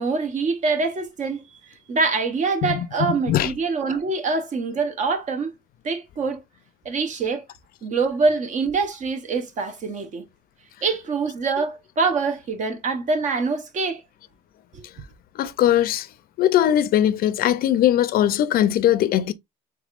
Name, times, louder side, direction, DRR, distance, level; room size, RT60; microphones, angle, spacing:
voice 1, 0.0-1.4 1.9-5.5 5.8-6.4 6.8-7.4 7.8-10.2 10.8-14.0 14.7-14.8, right 4 dB, 45° right, 0.8 m, -24 dB
voice 2, 15.4-16.1 16.4-19.3, left 11 dB, 60° left, 0.4 m, -20 dB
3.4 x 3.4 x 2.4 m
cardioid pair, 110°, 17 cm